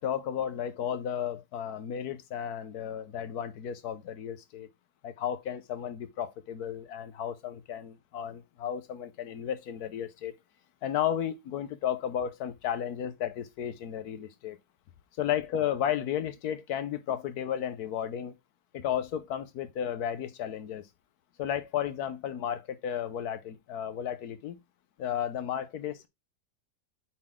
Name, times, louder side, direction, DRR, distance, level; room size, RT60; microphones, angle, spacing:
voice 1, 0.0-4.7 5.0-10.3 10.8-14.6 15.2-18.3 18.7-20.9 21.4-24.6 25.0-26.1, left 9 dB, 65° left, 1.3 m, -33 dB
8.7 x 4.1 x 3.7 m
omnidirectional pair, 1.8 m